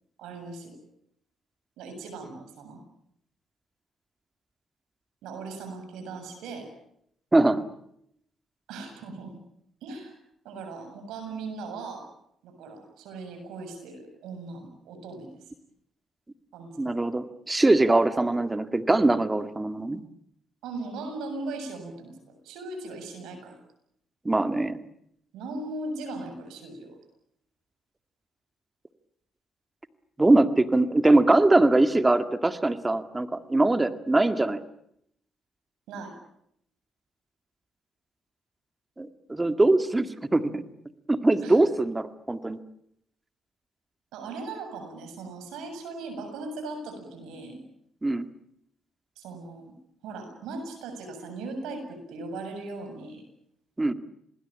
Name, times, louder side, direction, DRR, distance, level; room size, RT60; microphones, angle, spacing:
voice 1, 0.2-0.8 1.8-2.8 5.2-6.7 8.7-9.3 9.8-10.1 10.4-12.0 12.4-15.4 16.5-17.0 18.2-18.3 20.6-23.6 25.3-26.9 35.9-36.1 41.4-41.6 44.1-47.6 49.2-49.8 50.0-53.2, right 3 dB, 90° right, 6 dB, 7.3 m, -38 dB
voice 2, 7.3-7.6 16.8-20.0 24.3-24.8 30.2-34.6 39.0-40.6 41.1-42.6 48.0-48.3 53.8-53.9, right 2 dB, 15° right, 10 dB, 2.0 m, -22 dB
27.5 x 20.0 x 8.9 m, 0.73 s
cardioid pair, 90°, 0 cm